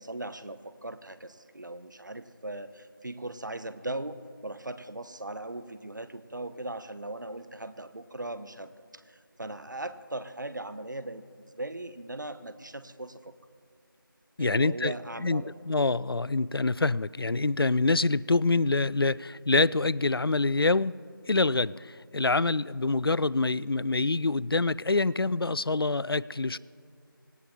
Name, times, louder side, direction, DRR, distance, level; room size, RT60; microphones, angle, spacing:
voice 1, 0.0-13.3 14.4-15.5, right 1 dB, 55° right, 12 dB, 0.9 m, -39 dB
voice 2, 14.4-14.9 15.2-21.0 21.3-26.6, left 3 dB, 85° left, 21 dB, 0.5 m, -26 dB
17.5 x 17.5 x 4.3 m, 2.2 s
figure-of-eight pair, 175°, 12 cm